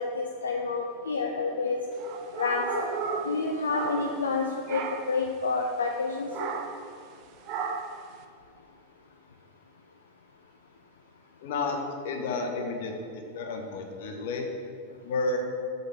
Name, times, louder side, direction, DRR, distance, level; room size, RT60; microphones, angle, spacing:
voice 1, 0.0-1.8 2.3-2.9 3.2-4.8 5.1-6.5, left 4 dB, 70° left, 1 dB, 0.4 m, -29 dB
sound 1, 2.0-4.4 4.7-5.2 6.3-6.9 7.5-8.0, right 5 dB, 40° right, 0.5 m, -34 dB
voice 2, 11.4-14.5 15.0-15.4, left 3 dB, 55° left, 3 dB, 0.9 m, -31 dB
6.7 x 3.9 x 5.7 m, 2.2 s
figure-of-eight pair, 90°, 0 cm